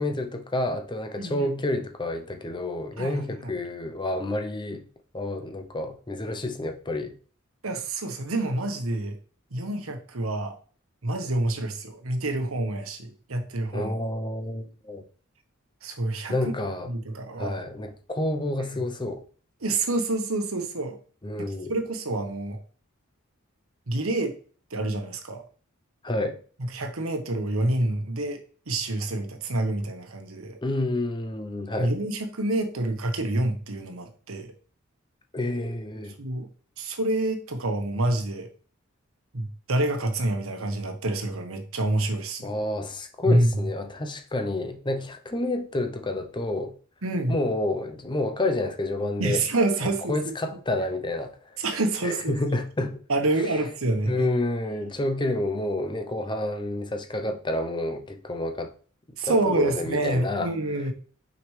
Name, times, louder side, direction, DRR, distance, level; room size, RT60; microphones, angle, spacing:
voice 1, 0.0-4.9 5.1-7.1 13.7-15.0 16.3-16.9 17.4-19.2 21.2-21.8 26.0-26.4 30.6-31.9 35.3-36.2 42.4-46.7 47.3-49.4 49.8-51.3 52.0-53.0 54.1-58.7 59.2-60.5, left 2 dB, 20° left, 0.6 m, -29 dB
voice 2, 1.2-1.5 3.0-3.5 7.6-9.2 9.5-10.5 11.0-13.9 15.8-16.3 16.9-17.6 19.6-21.0 21.7-22.6 23.9-24.3 24.7-25.4 26.7-30.6 31.8-34.5 36.2-36.5 36.8-38.5 39.3-42.5 43.3-43.6 47.0-47.3 49.2-50.2 51.6-52.3 53.1-54.3 59.2-60.9, right 2 dB, 90° right, 1.1 m, -27 dB
6.2 x 5.1 x 3.2 m
head